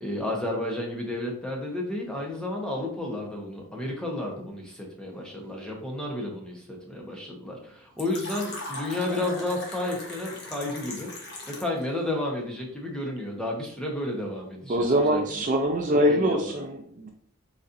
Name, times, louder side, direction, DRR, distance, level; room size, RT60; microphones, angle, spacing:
voice 1, 0.0-11.1 11.5-15.2 15.9-16.4, left 1 dB, 5° left, -1 dB, 0.9 m, -32 dB
Fill (with liquid), 8.0-11.8, left 2 dB, 55° left, 1.0 m, -39 dB
voice 2, 14.7-17.1, equal, 40° right, 3 dB, 0.5 m, -24 dB
4.1 x 4.0 x 2.5 m, 0.62 s
head